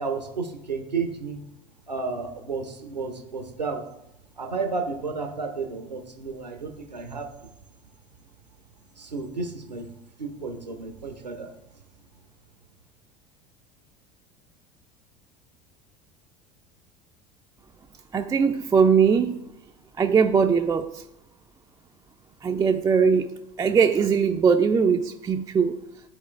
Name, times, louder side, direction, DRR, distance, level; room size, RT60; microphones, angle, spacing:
voice 1, 0.0-1.4 1.9-3.8 4.4-7.3 9.0-9.9 10.2-11.5, right 4 dB, 90° right, 4 dB, 0.7 m, -32 dB
voice 2, 18.1-19.4 20.0-21.0 22.4-23.3 23.6-25.8, right 6 dB, 15° right, 4 dB, 0.3 m, -20 dB
12.0 x 4.1 x 2.4 m, 0.83 s
figure-of-eight pair, 75°, 21 cm